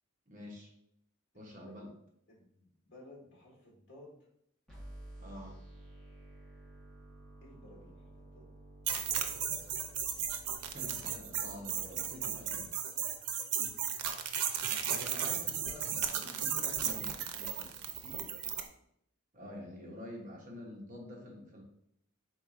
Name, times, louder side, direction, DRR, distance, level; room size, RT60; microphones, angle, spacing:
voice 1, 0.3-0.7 1.3-1.9 5.2-5.6 10.7-12.8 14.8-17.7 19.3-21.6, left 1 dB, 35° right, -1 dB, 0.9 m, -48 dB
voice 2, 1.3-1.8 2.3-4.2 7.4-8.5 14.8-15.1 15.5-15.6 17.9-18.3 19.4-19.7, left 1 dB, 55° left, -3 dB, 1.5 m, -56 dB
sound 1, 4.7-12.7, right 1 dB, 5° left, 1.2 m, -53 dB
sound 2, 8.9-18.7, right 8 dB, 90° right, 0.5 m, -35 dB
4.6 x 4.0 x 2.4 m, 0.73 s
head